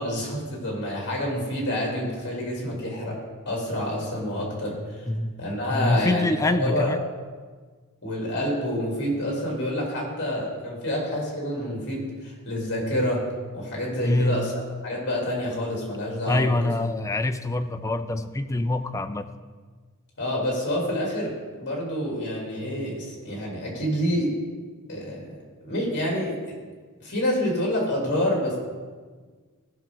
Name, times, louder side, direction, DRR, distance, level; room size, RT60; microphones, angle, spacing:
voice 1, 0.0-3.2 3.4-5.0 5.4-6.9 8.0-13.2 13.5-16.5 20.2-21.3 21.6-24.3 24.9-26.3 27.0-28.6, left 1 dB, 50° left, -2 dB, 3.2 m, -28 dB
voice 2, 5.1-5.4 5.7-7.0 14.0-14.5 16.3-19.3, left 2 dB, 15° left, 9 dB, 0.4 m, -25 dB
15.0 x 6.0 x 3.8 m, 1.5 s
head